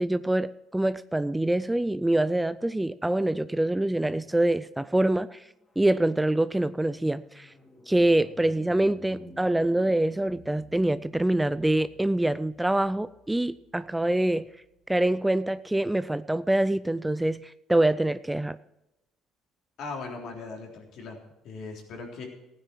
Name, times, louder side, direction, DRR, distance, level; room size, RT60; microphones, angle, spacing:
voice 1, 0.0-5.4 5.8-7.5 7.9-14.5 14.9-18.6, right 1 dB, 10° right, 15 dB, 0.5 m, -25 dB
sound 1, 5.3-14.8, left 1 dB, 25° left, 3.1 m, -53 dB
voice 2, 19.8-22.3, left 4 dB, 65° left, 1 dB, 3.5 m, -39 dB
15.5 x 9.4 x 4.6 m, 0.92 s
hypercardioid pair, 60°, 0 cm